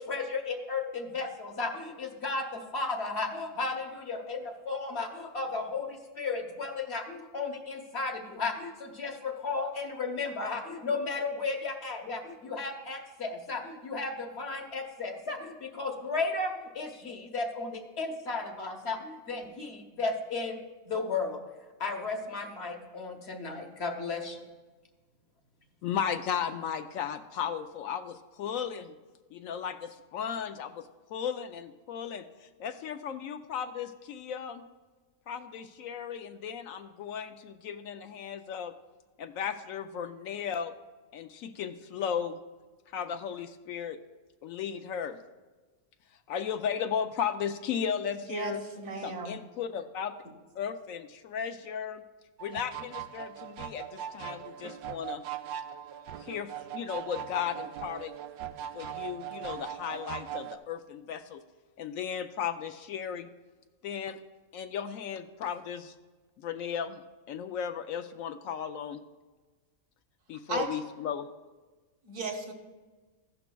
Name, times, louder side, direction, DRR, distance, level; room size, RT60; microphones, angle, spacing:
voice 1, 0.0-21.4 21.8-24.4, left 3 dB, 50° left, 4 dB, 1.2 m, -34 dB
voice 2, 25.8-28.9 29.3-34.7 35.3-38.7 39.2-40.7 41.1-42.4 42.9-44.0 44.4-45.2 46.3-48.6 49.0-50.2 50.6-52.0 52.4-55.2 56.2-58.1 58.7-61.4 61.8-63.3 63.8-64.2 64.5-65.9 66.4-67.0 67.3-69.0 70.3-71.3, left 8 dB, 75° left, 9 dB, 0.9 m, -35 dB
voice 3, 48.3-49.3 70.5-70.7 72.1-72.5, right 3 dB, 65° right, 3 dB, 1.6 m, -35 dB
sound 1, 52.4-60.6, right 10 dB, 85° right, 1.1 m, -40 dB
14.0 x 11.0 x 2.3 m, 1.3 s
omnidirectional pair, 1.5 m